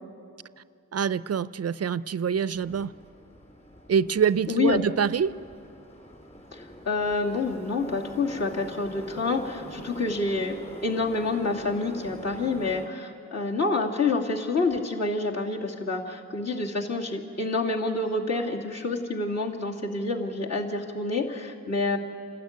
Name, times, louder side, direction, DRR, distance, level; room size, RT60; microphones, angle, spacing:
voice 1, 0.9-2.9 3.9-5.3, right 7 dB, 45° right, 17 dB, 0.5 m, -25 dB
Subway metro underground, 2.5-12.9, equal, 20° left, 3.3 m, -44 dB
voice 2, 4.5-4.8 6.5-22.0, left 3 dB, 50° left, -1 dB, 2.8 m, -28 dB
28.5 x 13.0 x 9.6 m, 2.4 s
cardioid pair, 65°, 34 cm